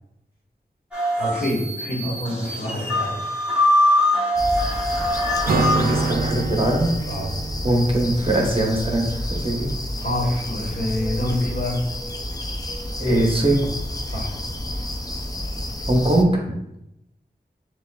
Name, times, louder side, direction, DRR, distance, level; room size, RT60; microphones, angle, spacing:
sound 1, 0.9-6.1, left 1 dB, 5° right, 1.3 m, -22 dB
voice 1, 1.2-3.2 7.1-7.4 10.0-11.8 14.1-14.4, left 1 dB, 55° left, -4 dB, 1.3 m, -26 dB
sound 2, 4.4-16.2, left 1 dB, 20° left, 0.4 m, -30 dB
voice 2, 5.5-6.9 7.6-9.7 13.0-13.7 15.9-16.3, right 1 dB, 30° right, -2 dB, 0.9 m, -21 dB
Acoustic guitar, 5.5-9.2, right 4 dB, 55° right, 0.4 m, -27 dB
6.5 x 2.3 x 2.3 m, 0.86 s
wide cardioid pair, 50°, 18 cm